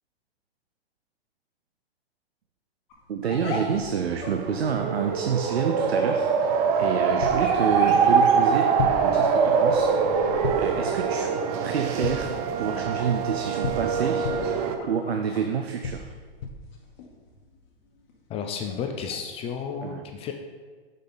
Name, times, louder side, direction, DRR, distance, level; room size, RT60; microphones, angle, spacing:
sound 1, 2.9-19.5, left 3 dB, 45° left, 1.4 m, -43 dB
voice 1, 3.1-8.7 9.0-11.3 11.6-14.6 14.8-16.1 19.8-20.0, right 6 dB, 90° right, 5 dB, 0.6 m, -28 dB
sound 2, 4.1-14.8, right 6 dB, 40° right, 0.6 m, -24 dB
sound 3, 7.2-7.6 8.8-9.1 10.4-10.8 12.0-12.4 13.6-14.6 15.8-16.7, left 5 dB, 70° left, 0.9 m, -32 dB
voice 2, 18.3-20.3, left 6 dB, 20° left, 4 dB, 0.4 m, -32 dB
6.5 x 5.1 x 4.0 m, 1.5 s
hypercardioid pair, 115°, 30 cm